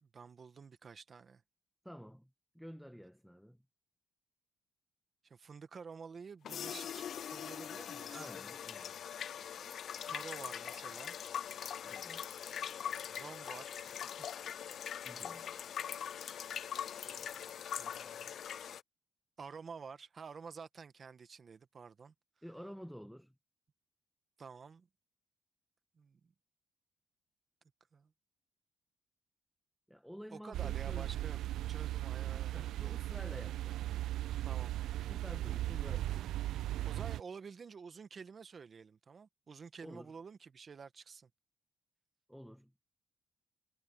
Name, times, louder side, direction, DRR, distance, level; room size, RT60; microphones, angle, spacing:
voice 1, 0.0-1.4 5.2-8.3 10.0-11.1 13.1-14.3 14.7-14.8 17.0-18.4 19.4-22.1 24.4-24.9 26.0-26.2 27.9-28.1 30.3-31.4 31.7-32.9 34.4-34.7 36.8-41.3, right 5 dB, 40° right, 1.5 m, -50 dB
voice 2, 1.8-3.6 8.1-9.0 11.8-12.3 15.0-15.5 22.4-23.4 29.9-31.3 32.5-33.8 35.1-36.4 39.8-40.2 42.3-42.7, equal, ahead, 1.7 m, -50 dB
sound 1, 6.4-18.8, left 9 dB, 60° left, 0.7 m, -42 dB
sound 2, 30.5-37.2, right 14 dB, 80° right, 0.4 m, -37 dB
cardioid pair, 90°, 0 cm